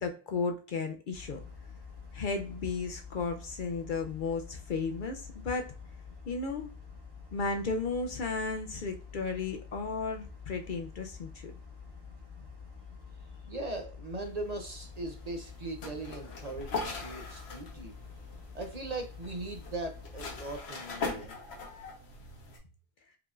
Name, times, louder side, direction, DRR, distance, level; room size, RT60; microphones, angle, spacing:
voice 1, 0.0-1.4 2.1-5.7 6.3-6.7 7.3-11.5, left 4 dB, 60° left, 5 dB, 0.6 m, -34 dB
sound 1, 1.1-20.6, left 5 dB, 20° right, 1.1 m, -48 dB
voice 2, 13.5-18.0 18.5-21.4, right 2 dB, 45° right, 4 dB, 0.6 m, -39 dB
sound 2, 14.3-22.6, left 3 dB, 75° left, 1.2 m, -41 dB
4.8 x 3.4 x 2.4 m, 0.36 s
omnidirectional pair, 1.1 m